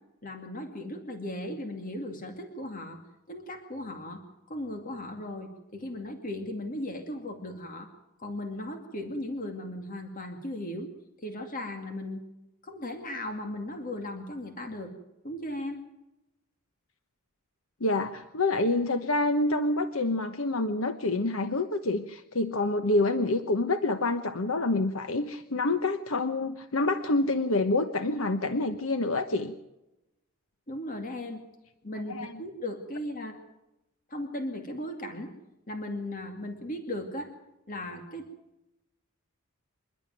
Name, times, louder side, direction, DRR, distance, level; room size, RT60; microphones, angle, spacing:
voice 1, 0.2-3.0 3.3-4.2 4.5-7.9 8.2-10.9 11.2-12.2 12.6-14.9 15.2-15.8 30.7-31.4 31.8-33.4 34.1-35.3 35.7-37.3 37.7-38.3, left 1 dB, 40° left, 4 dB, 2.3 m, -37 dB
voice 2, 17.8-29.5 32.1-32.3, left 2 dB, 65° left, 8 dB, 1.1 m, -27 dB
27.5 x 12.0 x 9.2 m, 0.95 s
head